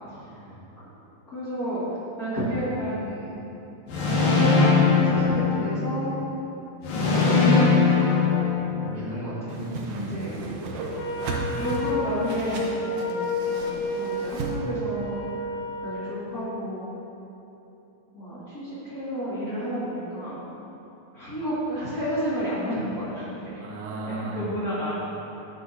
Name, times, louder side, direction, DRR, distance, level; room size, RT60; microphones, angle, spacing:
voice 1, 0.1-0.6 8.8-10.2 11.2-11.8 23.6-24.5, right 2 dB, 85° right, -3 dB, 3.1 m, -36 dB
voice 2, 1.3-1.8 2.2-3.6 4.1-6.1 6.9-9.6 9.9-10.5 11.1-15.5 15.8-16.9 18.1-20.4 21.1-23.6 24.2-25.0, equal, 30° left, -11 dB, 2.2 m, -31 dB
sound 1, 3.9-6.1 6.8-9.0, left 4 dB, 65° left, 3.1 m, -21 dB
Whoosh swoosh swish, 9.5-14.5, right 2 dB, 70° right, 1.9 m, -35 dB
Wind instrument woodwind instrument, 10.9-16.2, left 2 dB, 80° left, 1.4 m, -30 dB
11.0 x 10.0 x 2.8 m, 3.0 s
omnidirectional pair, 4.2 m